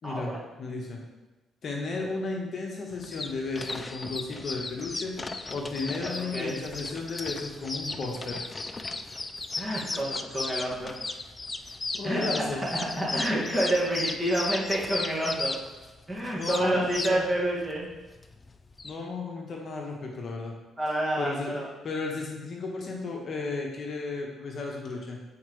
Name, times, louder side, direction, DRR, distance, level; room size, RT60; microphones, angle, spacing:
voice 1, 0.0-1.0 1.6-8.4 12.0-12.6 16.3-17.2 18.8-20.6 21.2-21.6 21.8-25.2, left 3 dB, 50° left, 0 dB, 1.1 m, -34 dB
sound 1, 2.9-18.9, left 3 dB, 25° left, 0.4 m, -36 dB
voice 2, 6.0-6.6 9.6-11.0 12.0-12.3 13.0-15.6 16.1-17.9 20.8-21.7, right 1 dB, 20° right, -5 dB, 1.9 m, -28 dB
8.3 x 4.5 x 3.2 m, 1.1 s
cardioid pair, 90°, 0 cm